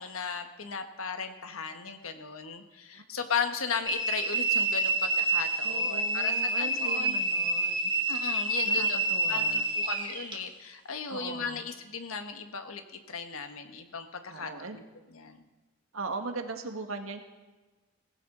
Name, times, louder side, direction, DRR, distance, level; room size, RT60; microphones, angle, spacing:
voice 1, 0.0-7.2 8.1-9.0 9.3-14.8 15.1-15.5, left 5 dB, 85° left, 7 dB, 1.4 m, -36 dB
sound 1, 3.9-10.4, right 2 dB, 25° right, 1.8 m, -28 dB
voice 2, 5.6-7.9 8.6-9.7 11.1-11.7 14.3-14.8 15.9-17.2, right 3 dB, 75° right, 5 dB, 1.6 m, -39 dB
19.5 x 16.0 x 3.9 m, 1.2 s
head